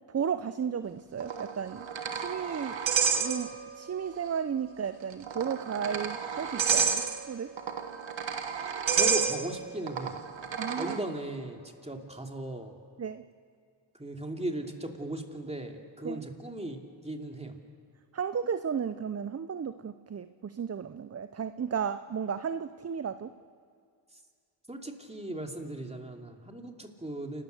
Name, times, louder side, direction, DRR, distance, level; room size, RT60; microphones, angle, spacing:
voice 1, 0.1-2.8 3.2-7.5 10.6-11.0 13.0-13.2 16.0-16.3 18.1-23.3, right 7 dB, 35° right, 12 dB, 0.6 m, -34 dB
sound 1, 1.2-3.9 4.1-4.2 5.1-11.0, right 6 dB, 70° right, 1.4 m, -30 dB
voice 2, 9.0-10.1 10.8-12.7 14.0-16.8 17.0-17.5 24.7-27.4, right 1 dB, 15° right, 3 dB, 2.7 m, -37 dB
29.0 x 13.5 x 6.7 m, 2.1 s
cardioid pair, 50°, 47 cm